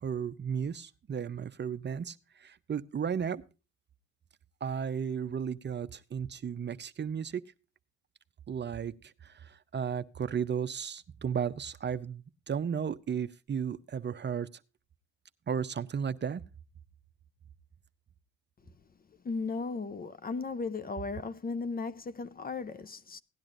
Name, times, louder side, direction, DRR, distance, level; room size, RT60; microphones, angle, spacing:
voice 1, 0.0-3.4 4.6-7.4 8.5-14.5 15.5-16.4, right 7 dB, 35° right, 0.7 m, -34 dB
voice 2, 19.2-23.2, left 4 dB, 30° left, 0.6 m, -36 dB
17.0 x 10.5 x 2.5 m
cardioid pair, 90°, 30 cm